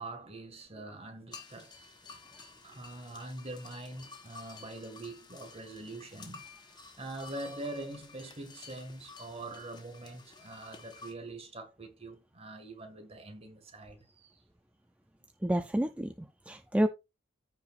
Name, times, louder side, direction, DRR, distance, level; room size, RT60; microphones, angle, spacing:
voice 1, 0.0-1.9 2.6-6.4 7.0-14.3, right 2 dB, 30° right, 2.0 m, -44 dB
sound 1, 1.3-11.1, left 4 dB, 20° left, 1.3 m, -52 dB
voice 2, 15.4-16.9, right 1 dB, 5° right, 0.4 m, -29 dB
14.5 x 4.8 x 2.5 m
head